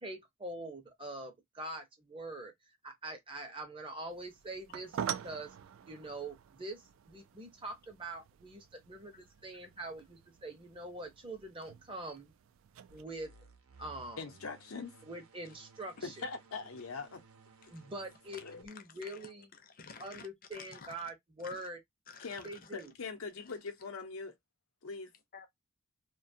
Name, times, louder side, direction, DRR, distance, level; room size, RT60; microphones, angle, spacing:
voice 1, 0.0-2.5 2.8-5.5 5.9-12.3 12.9-13.3 13.8-14.3 15.0-16.2 17.7-19.5 20.0-21.8 22.4-22.9, right 1 dB, 25° right, 0.6 m, -44 dB
sound 1, 4.1-13.0, right 9 dB, 70° right, 0.3 m, -46 dB
sound 2, 12.9-18.7, right 3 dB, 85° right, 0.7 m, -59 dB
voice 2, 14.2-15.0 16.0-17.2 18.4-18.7 22.2-24.3 24.8-25.1, left 4 dB, 85° left, 0.7 m, -42 dB
voice 3, 18.5-21.1 21.4-21.7 22.1-22.9 23.4-23.6 25.3-25.5, left 5 dB, 40° left, 0.6 m, -53 dB
2.4 x 2.2 x 2.5 m
head